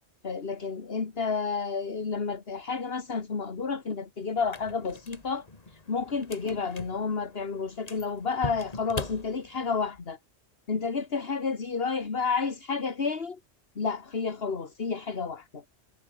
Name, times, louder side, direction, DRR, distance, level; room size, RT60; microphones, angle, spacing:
voice 1, 0.2-10.2 10.7-13.4 13.8-15.6, left 5 dB, 60° left, 2.0 m, -31 dB
sound 1, 4.4-9.9, left 3 dB, 35° left, 2.0 m, -41 dB
omnidirectional pair, 1.2 m